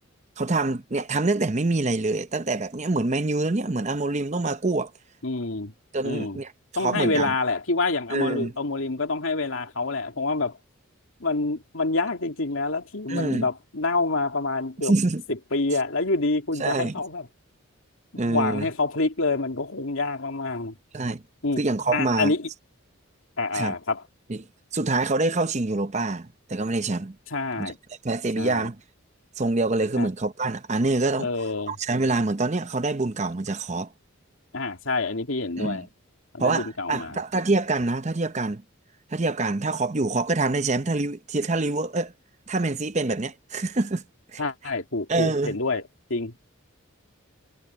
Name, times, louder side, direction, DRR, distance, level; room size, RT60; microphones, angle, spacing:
voice 1, 0.4-4.9 5.9-7.3 8.1-8.5 13.1-13.5 14.8-15.2 16.6-17.0 18.2-18.7 20.9-21.2 21.6-22.3 23.5-23.7 24.3-24.4 24.7-27.2 27.6-27.7 28.0-28.8 29.4-31.3 31.7-33.9 35.6-35.8 36.4-38.6 39.1-42.1 42.5-44.0 44.3-44.4 45.1-45.6, right 2 dB, 35° right, 0.7 m, -25 dB
voice 2, 5.2-5.7 6.0-6.4 6.8-10.6 11.2-14.9 15.3-17.3 18.1-20.7 21.4-21.6 21.9-22.5 23.4-24.0 27.3-27.8 28.4-28.7 29.9-30.1 31.2-31.7 34.5-35.9 36.3-37.2 44.4-45.8 46.1-46.3, left 3 dB, 70° left, 2.5 m, -27 dB
head